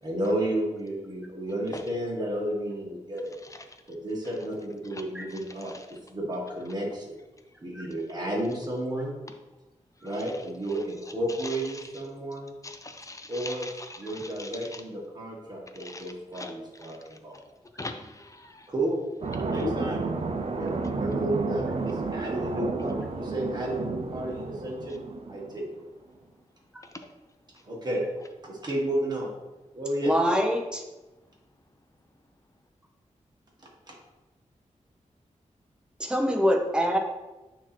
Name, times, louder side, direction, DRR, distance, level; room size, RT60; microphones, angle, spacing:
voice 1, 0.0-3.3 3.9-7.1 7.6-9.2 10.0-12.5 13.3-13.7 14.0-17.4 18.7-19.0 19.3-20.0 20.5-25.0 25.3-25.7 27.6-28.0 28.4-29.3 29.7-30.1 33.9-34.0, right 1 dB, 35° right, -2 dB, 1.6 m, -32 dB
voice 2, 11.4-11.8 12.6-14.5 15.8-16.0 16.3-16.5 16.8-17.0 17.8-18.7 19.5-19.7, left 3 dB, 25° left, 6 dB, 0.5 m, -40 dB
sound 1, 19.2-25.6, right 3 dB, 50° right, 0.6 m, -32 dB
voice 3, 30.0-30.8 36.0-37.0, equal, 5° right, 2 dB, 0.9 m, -24 dB
8.8 x 2.9 x 4.3 m, 1.1 s
wide cardioid pair, 125°, 13 cm